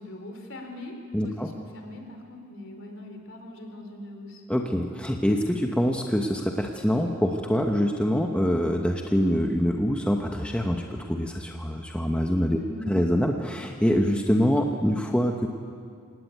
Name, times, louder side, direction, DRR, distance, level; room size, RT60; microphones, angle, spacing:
voice 1, 0.0-1.0 1.2-4.4 12.6-13.0, left 2 dB, 60° left, 3 dB, 4.0 m, -41 dB
voice 2, 1.1-1.5 4.5-12.6 12.9-15.5, equal, 5° left, 2 dB, 1.1 m, -25 dB
26.5 x 17.5 x 9.4 m, 2.2 s
head